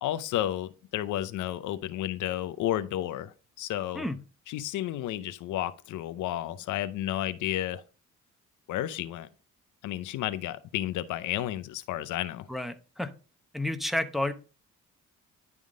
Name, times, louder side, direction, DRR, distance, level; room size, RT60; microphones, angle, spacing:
voice 1, 0.0-4.0 4.5-7.8 8.7-9.3 9.8-12.5, left 13 dB, 80° left, 0.6 m, -32 dB
voice 2, 12.5-13.1 13.5-14.3, left 1 dB, ahead, 0.8 m, -30 dB
10.5 x 3.6 x 3.7 m
cardioid pair, 90°, 30 cm